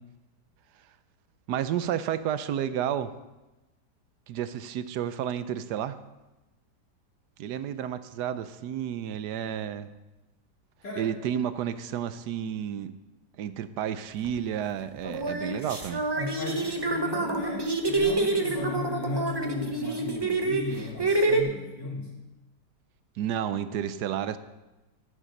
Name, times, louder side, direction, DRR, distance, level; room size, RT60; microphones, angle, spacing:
voice 1, 1.5-3.1 4.3-6.0 7.4-9.9 11.0-12.9 13.4-16.0 23.2-24.4, right 9 dB, 75° right, 13 dB, 1.2 m, -31 dB
sound 1, 14.2-14.4 15.0-21.4, right 2 dB, 20° right, 0.7 m, -27 dB
voice 2, 16.2-22.1, left 3 dB, 85° left, -4 dB, 3.6 m, -35 dB
12.5 x 7.5 x 6.5 m, 1.1 s
omnidirectional pair, 1.8 m